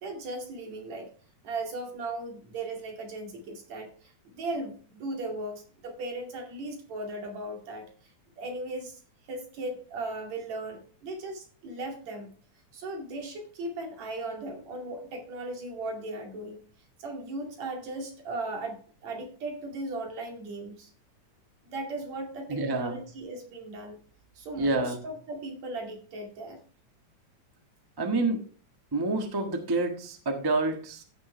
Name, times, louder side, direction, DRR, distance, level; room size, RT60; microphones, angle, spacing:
voice 1, 0.0-1.1 1.4-8.1 8.4-9.0 9.3-12.3 12.7-16.6 17.0-20.9 21.6-24.0 24.4-26.6, right 2 dB, 65° right, 3 dB, 3.6 m, -37 dB
voice 2, 22.5-23.0 24.6-25.0 28.0-28.4 28.9-31.0, right 2 dB, 25° right, 5 dB, 0.4 m, -28 dB
14.5 x 6.6 x 3.3 m, 0.40 s
omnidirectional pair, 3.4 m